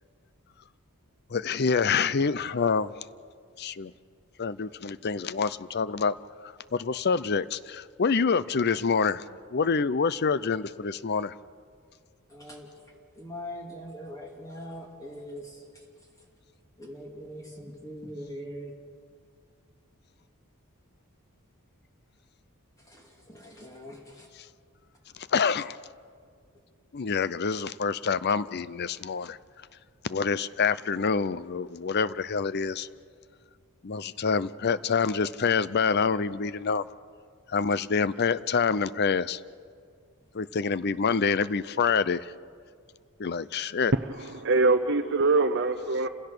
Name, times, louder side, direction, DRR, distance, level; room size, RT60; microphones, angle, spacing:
voice 1, 1.3-2.9 3.6-3.9 4.4-6.2 6.7-9.2 9.5-11.3 25.2-25.8 26.9-29.4 30.0-32.9 33.8-36.8 37.5-39.4 40.3-42.3 43.2-43.9, left 5 dB, 50° left, 17 dB, 0.6 m, -26 dB
voice 2, 12.3-12.7 13.1-15.6 16.8-18.7 22.9-24.3, equal, 15° left, 0 dB, 2.5 m, -42 dB
voice 3, 43.9-46.1, right 3 dB, 55° right, 7 dB, 0.7 m, -24 dB
29.5 x 16.5 x 6.8 m, 2.1 s
head